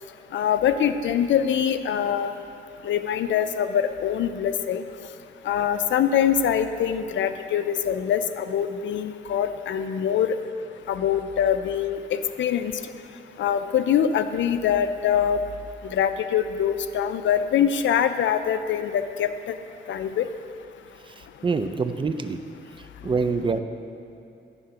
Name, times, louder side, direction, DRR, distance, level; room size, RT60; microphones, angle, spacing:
voice 1, 0.3-2.3 2.8-4.8 5.5-10.3 10.9-12.8 13.4-15.4 15.8-19.3 19.9-20.3, left 9 dB, 70° left, 10 dB, 0.4 m, -24 dB
voice 2, 21.0-22.4 22.7-23.6, right 4 dB, 25° right, 9 dB, 0.4 m, -26 dB
9.7 x 3.7 x 5.7 m, 2.6 s
cardioid pair, 95°, 20 cm